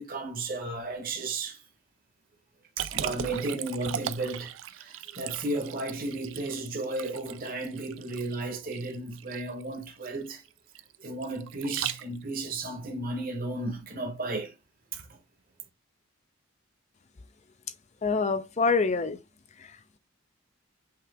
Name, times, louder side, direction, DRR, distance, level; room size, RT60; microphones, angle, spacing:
voice 1, 0.0-1.6 2.8-10.4 11.0-14.5 14.9-15.2, right 2 dB, 40° right, 1.0 m, -34 dB
Liquid, 2.8-12.4, right 10 dB, 60° right, 0.3 m, -38 dB
voice 2, 18.0-19.2 19.6-20.0, left 4 dB, 30° left, 0.4 m, -27 dB
5.7 x 2.5 x 3.4 m
head